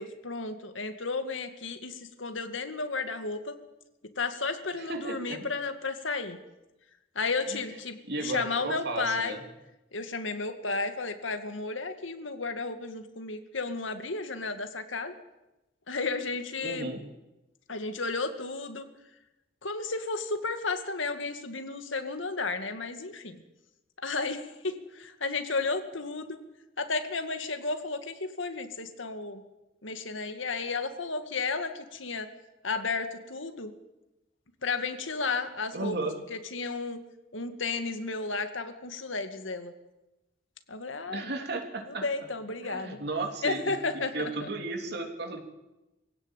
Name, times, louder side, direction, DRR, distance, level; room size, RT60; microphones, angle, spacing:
voice 1, 0.0-3.5 4.2-6.4 7.2-9.4 9.9-15.1 15.9-16.9 17.7-18.9 19.6-23.4 24.0-26.4 26.8-29.4 29.8-32.3 32.6-33.7 34.6-36.0 36.3-37.0 37.3-39.7 40.7-41.3 41.9-43.0 43.4-44.5, left 3 dB, 80° left, 8 dB, 2.2 m, -33 dB
voice 2, 4.8-5.4 7.5-9.4 16.6-17.0 35.7-36.2 41.1-42.1 42.6-45.4, right 2 dB, 55° right, 4 dB, 3.3 m, -35 dB
22.5 x 16.5 x 9.1 m, 1.0 s
head